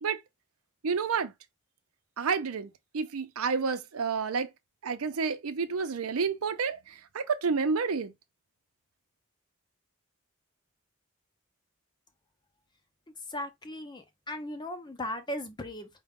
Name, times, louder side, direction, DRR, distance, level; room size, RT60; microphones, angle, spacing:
voice 1, 0.8-1.3 2.2-4.5 4.8-8.1, right 5 dB, 85° right, 0.6 m, -30 dB
voice 2, 13.3-15.9, left 1 dB, 20° left, 0.6 m, -37 dB
4.8 x 2.2 x 3.5 m
head